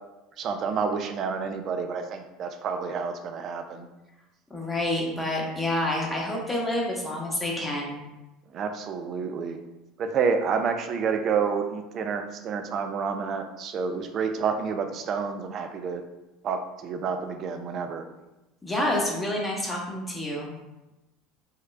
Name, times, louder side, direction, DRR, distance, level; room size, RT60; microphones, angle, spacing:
voice 1, 0.4-3.9 8.5-9.6 10.0-16.0 16.4-18.0, right 6 dB, 50° right, 6 dB, 0.4 m, -29 dB
voice 2, 4.5-8.0 18.6-20.5, left 1 dB, 15° left, -2 dB, 1.0 m, -28 dB
3.6 x 2.2 x 3.2 m, 1.0 s
hypercardioid pair, 75°, 0 cm